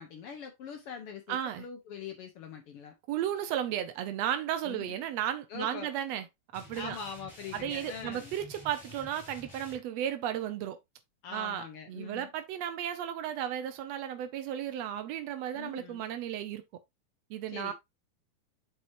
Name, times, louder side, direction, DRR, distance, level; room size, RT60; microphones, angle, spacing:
voice 1, 0.0-2.9 4.6-5.0 5.5-5.9 6.8-8.3 11.2-12.3 15.5-16.0 17.5-17.7, left 6 dB, 70° left, 1.3 m, -43 dB
voice 2, 1.3-1.6 3.1-6.3 6.5-7.0 7.5-10.8 11.3-16.6 17.3-17.7, right 10 dB, 70° right, 1.6 m, -34 dB
sound 1, 6.5-9.8, equal, 15° left, 3.2 m, -50 dB
7.6 x 6.1 x 2.6 m
omnidirectional pair, 3.9 m